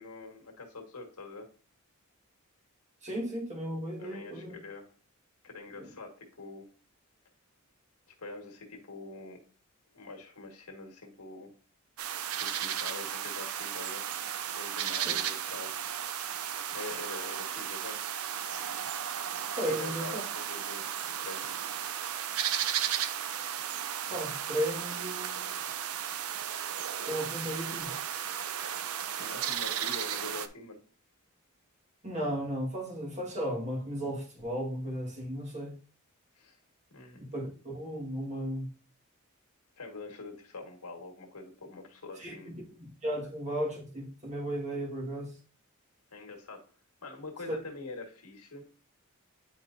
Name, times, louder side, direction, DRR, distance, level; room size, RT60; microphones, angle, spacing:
voice 1, 0.0-1.5 4.0-4.9 5.4-6.7 8.2-9.4 9.9-11.5 12.4-15.8 16.7-18.0 19.6-21.5 21.8-22.0 29.0-30.8 36.3-36.6 36.9-37.2 39.8-42.5 43.2-43.3 46.1-46.6 47.0-48.7, left 3 dB, 85° left, 1.6 m, -45 dB
voice 2, 3.0-4.6 5.8-5.9 15.0-15.1 19.6-20.2 24.1-25.5 27.0-28.0 32.0-35.8 37.2-38.7 42.2-45.3, equal, 30° right, 1.6 m, -35 dB
sound 1, 12.0-30.5, right 9 dB, 70° right, 0.5 m, -34 dB
9.1 x 4.4 x 2.6 m
head